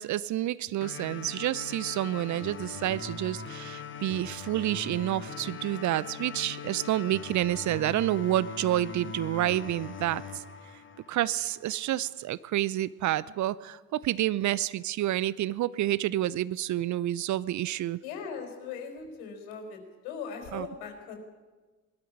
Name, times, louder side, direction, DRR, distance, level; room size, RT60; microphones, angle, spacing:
voice 1, 0.0-10.4 11.1-18.0 20.5-20.7, right 14 dB, 45° right, 19 dB, 0.7 m, -29 dB
sound 1, 0.8-11.8, left 5 dB, 25° left, 2.6 m, -41 dB
voice 2, 18.0-19.8 20.0-21.2, left 6 dB, 65° left, 4 dB, 4.4 m, -39 dB
20.5 x 13.0 x 9.9 m, 1.3 s
figure-of-eight pair, 60°, 43 cm